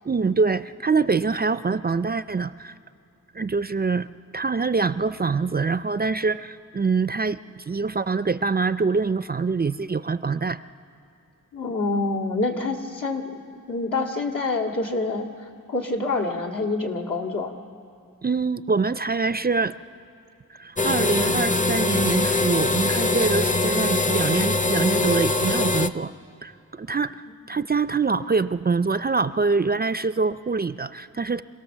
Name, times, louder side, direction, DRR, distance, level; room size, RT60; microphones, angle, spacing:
voice 1, 0.1-2.7 3.3-4.1 4.3-10.6 18.2-19.7 20.6-26.1 26.4-31.4, right 4 dB, 30° right, 14 dB, 0.4 m, -24 dB
voice 2, 11.5-13.4 13.7-17.6, left 3 dB, 70° left, -1 dB, 2.1 m, -27 dB
sound 1, 20.8-25.9, left 2 dB, 25° left, 0.6 m, -22 dB
26.0 x 17.5 x 7.3 m, 2.6 s
cardioid pair, 55°, 33 cm